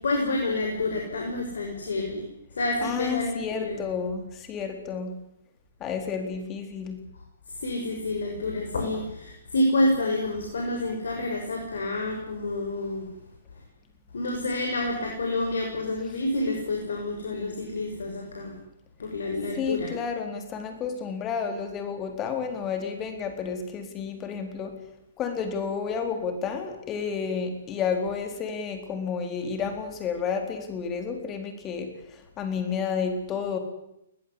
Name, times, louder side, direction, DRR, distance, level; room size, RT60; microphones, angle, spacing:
voice 1, 0.0-2.2 2.5-3.8 7.6-13.1 14.1-18.5 19.0-19.9, left 2 dB, 70° left, 1 dB, 6.5 m, -28 dB
voice 2, 2.8-5.1 5.8-7.0 19.6-24.7 25.2-31.9 32.4-33.6, left 6 dB, 25° left, 6 dB, 4.1 m, -31 dB
21.0 x 20.0 x 10.0 m, 0.80 s
figure-of-eight pair, 120°, 0 cm